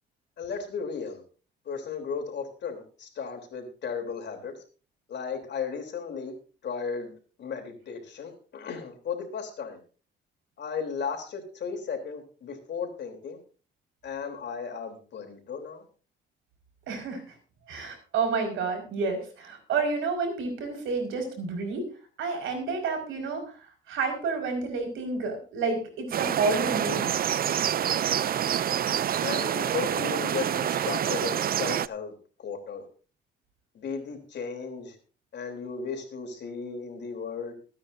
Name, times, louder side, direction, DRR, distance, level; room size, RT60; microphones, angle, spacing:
voice 1, 0.4-1.2 1.7-4.6 5.1-6.3 6.6-7.1 7.4-9.8 10.6-13.4 14.0-15.8 29.2-32.8 33.7-35.0 35.3-37.5, left 6 dB, 60° left, 3 dB, 3.6 m, -35 dB
voice 2, 16.9-17.2 17.7-21.9 22.2-23.5 23.9-27.2, right 4 dB, 85° right, 4 dB, 5.3 m, -30 dB
sound 1, 26.1-31.9, right 10 dB, 50° right, 0.5 m, -27 dB
23.0 x 9.6 x 2.7 m, 0.38 s
cardioid pair, 90°, 20 cm